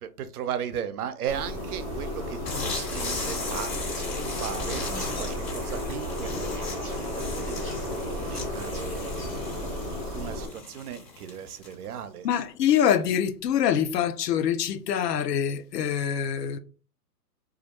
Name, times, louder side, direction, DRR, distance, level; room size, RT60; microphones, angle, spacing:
voice 1, 0.0-3.7 4.3-4.8 5.2-9.4 10.1-12.3, right 9 dB, 65° right, 0.6 m, -36 dB
sound 1, 1.3-10.5, left 1 dB, 15° left, 0.6 m, -33 dB
sound 2, 2.4-11.9, left 3 dB, 35° left, 1.4 m, -37 dB
voice 2, 12.2-16.6, left 9 dB, 80° left, 0.5 m, -25 dB
2.3 x 2.0 x 2.9 m
hypercardioid pair, 145°, 48 cm